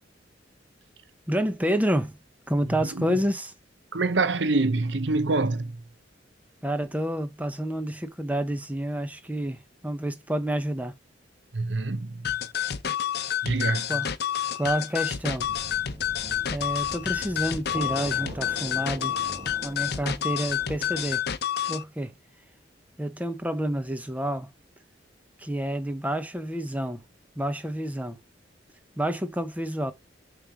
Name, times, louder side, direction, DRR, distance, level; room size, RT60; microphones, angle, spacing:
voice 1, 1.3-2.2 2.5-3.5 6.6-11.0 13.9-14.1 14.5-15.5 16.5-19.2 19.6-21.3 21.7-22.1 23.0-24.5 25.4-27.0 27.4-28.2 29.0-29.9, right 1 dB, 10° right, 1.0 m, -29 dB
voice 2, 2.8-3.2 3.9-5.8 11.5-12.3 13.4-13.9, right 3 dB, 70° right, 0.9 m, -26 dB
sound 1, 12.2-21.8, left 9 dB, 60° left, 0.8 m, -29 dB
sound 2, 15.4-21.2, right 1 dB, 30° right, 1.2 m, -42 dB
7.5 x 3.4 x 6.0 m
head